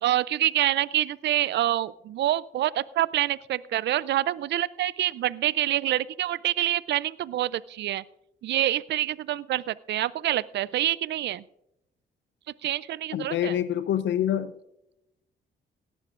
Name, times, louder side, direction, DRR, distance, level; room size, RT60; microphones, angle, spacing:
voice 1, 0.0-8.0 8.4-11.4 12.6-13.5, right 13 dB, 70° right, 20 dB, 0.4 m, -26 dB
voice 2, 13.1-14.5, left 10 dB, 80° left, 13 dB, 0.5 m, -26 dB
17.5 x 11.5 x 2.5 m, 0.81 s
cardioid pair, 65°, 19 cm